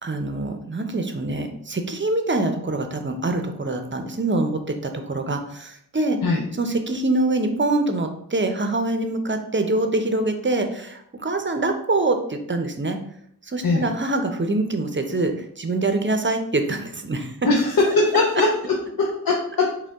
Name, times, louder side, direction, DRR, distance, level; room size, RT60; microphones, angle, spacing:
voice 1, 0.0-6.2 6.6-13.0 13.4-17.4 17.8-17.9, right 2 dB, 30° right, 6 dB, 0.6 m, -24 dB
voice 2, 17.5-19.8, left 3 dB, 65° left, -1 dB, 0.7 m, -21 dB
5.1 x 2.2 x 3.4 m, 0.70 s
wide cardioid pair, 45°, 37 cm